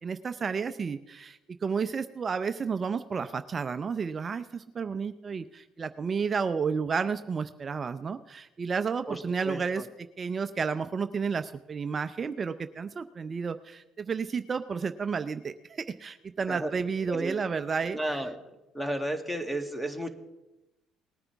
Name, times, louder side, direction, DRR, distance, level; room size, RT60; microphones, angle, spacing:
voice 1, 0.0-9.9 10.2-18.2, right 5 dB, 40° right, 10 dB, 0.6 m, -31 dB
voice 2, 9.1-9.8 16.5-16.7 17.1-17.4 17.9-18.4 18.7-20.1, right 1 dB, 10° left, 6 dB, 2.0 m, -33 dB
19.5 x 9.6 x 3.5 m, 0.99 s
supercardioid pair, 65°, 0 cm